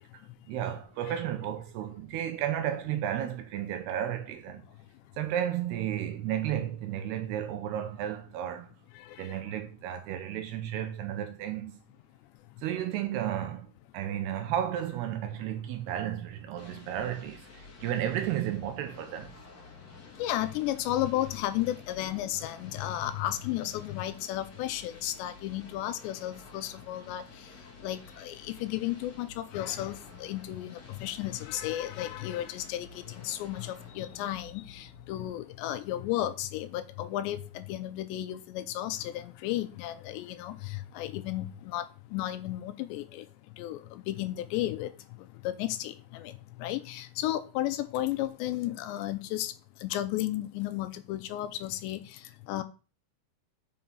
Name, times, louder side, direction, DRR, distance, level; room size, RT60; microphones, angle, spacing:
voice 1, 0.5-4.6 5.2-8.7 9.2-11.8 12.6-13.7 13.9-19.3, right 11 dB, 75° right, 2.6 m, -33 dB
voice 2, 9.1-9.4 20.2-27.2 27.8-32.9 33.2-41.8 42.1-43.3 43.6-44.9 45.4-46.3 46.6-49.5 49.8-52.2 52.5-52.6, left 14 dB, 80° left, 2.8 m, -33 dB
sound 1, 16.6-35.6, left 3 dB, 40° left, 1.6 m, -51 dB
7.6 x 5.5 x 5.7 m
omnidirectional pair, 5.2 m